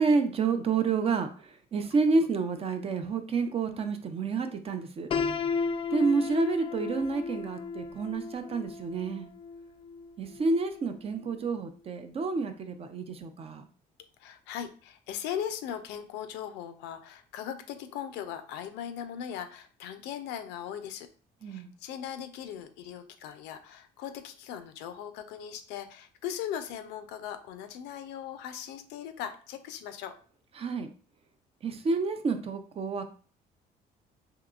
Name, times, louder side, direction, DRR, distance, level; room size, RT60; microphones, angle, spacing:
voice 1, 0.0-5.1 5.9-9.3 10.2-13.6 21.4-21.7 30.6-30.9 31.6-33.0, right 4 dB, 35° right, 8 dB, 0.5 m, -29 dB
Piano, 5.1-11.0, left 5 dB, 30° left, 0.3 m, -34 dB
voice 2, 14.2-21.1 21.4-30.1, left 9 dB, 90° left, 9 dB, 0.5 m, -39 dB
3.6 x 2.9 x 2.3 m, 0.40 s
cardioid pair, 110°, 17 cm